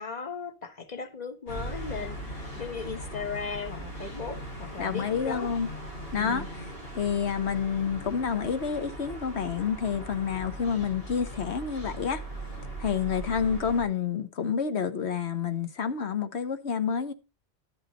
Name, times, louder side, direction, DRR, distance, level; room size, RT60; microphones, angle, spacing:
voice 1, 0.0-5.5 6.2-6.5, left 5 dB, 40° left, 1.3 m, -37 dB
sound 1, 1.5-13.8, right 1 dB, 65° left, 5.9 m, -39 dB
voice 2, 4.8-5.7 6.1-6.4 6.9-12.2 12.8-17.1, left 7 dB, 80° left, 1.4 m, -29 dB
12.0 x 8.0 x 4.2 m
omnidirectional pair, 1.1 m